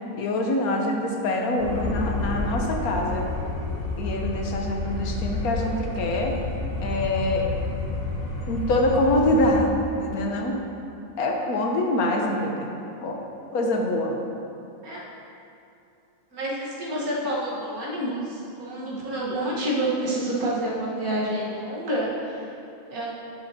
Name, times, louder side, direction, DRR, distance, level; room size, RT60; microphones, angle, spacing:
voice 1, 0.2-3.3 4.0-6.4 6.8-7.5 8.5-9.7 10.0-10.6 11.2-12.7 13.0-13.2 13.5-14.2, left 1 dB, 90° left, 1 dB, 1.4 m, -25 dB
sound 1, 1.6-9.6, left 2 dB, 60° left, 1.5 m, -30 dB
voice 2, 16.3-22.5 22.9-23.1, right 1 dB, 85° right, -5 dB, 1.9 m, -28 dB
10.0 x 7.2 x 2.8 m, 2.7 s
omnidirectional pair, 1.5 m